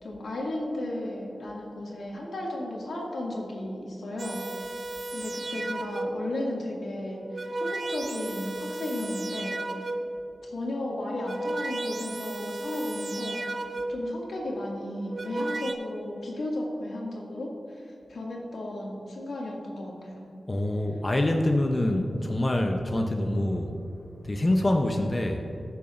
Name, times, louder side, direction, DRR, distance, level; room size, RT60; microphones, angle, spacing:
voice 1, 0.0-4.7 5.1-9.9 10.4-13.6 13.9-20.3, left 1 dB, 90° left, -4 dB, 2.2 m, -34 dB
sound 1, 4.2-6.3 7.1-10.2 11.0-14.1 14.9-15.7, right 2 dB, 45° right, 0.7 m, -34 dB
voice 2, 20.5-23.8 24.2-25.4, left 1 dB, 30° left, 3 dB, 0.7 m, -25 dB
20.5 x 6.9 x 2.5 m, 2.7 s
wide cardioid pair, 105°, 0 cm